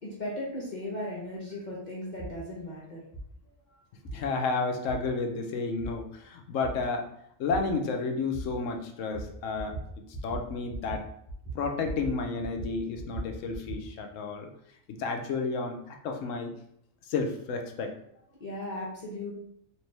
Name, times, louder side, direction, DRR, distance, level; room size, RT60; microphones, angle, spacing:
voice 1, 0.0-3.0 3.7-3.8 18.4-19.4, left 1 dB, 40° left, -6 dB, 0.8 m, -37 dB
sound 1, 2.2-2.3 3.1-3.2 4.0-4.2 4.9-5.0 5.8-5.9 6.6-6.7 7.5-7.6 8.3-8.4 9.1-9.3 9.5-9.9 10.1-10.4 10.7-11.0 11.3-12.1 12.4-13.8, right 2 dB, 10° left, 1.0 m, -38 dB
voice 2, 4.1-7.1 7.4-9.8 10.2-11.1 11.5-14.5 14.9-16.6 17.1-17.9, left 4 dB, 80° left, 3 dB, 1.0 m, -31 dB
4.3 x 2.7 x 3.3 m, 0.72 s
omnidirectional pair, 1.3 m